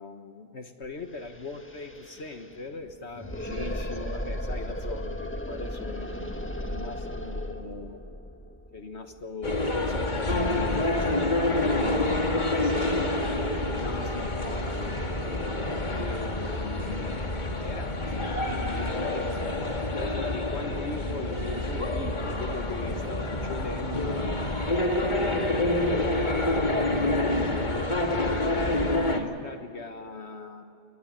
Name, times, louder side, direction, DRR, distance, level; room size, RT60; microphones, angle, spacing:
voice 1, 0.0-6.1 6.6-8.0 8.7-12.4 13.2-15.2 15.9-17.2 17.5-24.6 25.1-27.9 28.5-30.6, left 4 dB, 60° left, 6 dB, 1.7 m, -39 dB
sound 1, 0.8-0.9 1.1-9.9, equal, 10° left, 1.5 m, -36 dB
voice 2, 3.4-3.8 6.1-6.4 11.6-13.2 15.6-16.2 28.8-29.2, equal, 25° right, -1 dB, 3.9 m, -43 dB
sound 2, 9.4-29.2, left 2 dB, 35° left, 2.1 m, -27 dB
23.5 x 19.5 x 8.8 m, 2.5 s
omnidirectional pair, 1.3 m